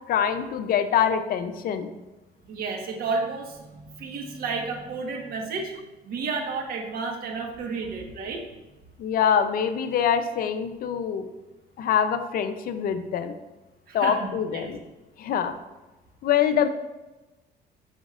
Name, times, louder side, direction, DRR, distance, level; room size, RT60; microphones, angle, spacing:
voice 1, 0.1-1.9 9.0-11.3 11.8-13.3 13.9-14.8 15.2-15.5 16.2-16.7, left 8 dB, 60° left, 9 dB, 0.6 m, -24 dB
voice 2, 2.5-5.7 6.0-8.4 13.9-14.7, right 4 dB, 65° right, 3 dB, 1.4 m, -31 dB
11.5 x 5.1 x 2.5 m, 1.1 s
cardioid pair, 110°, 17 cm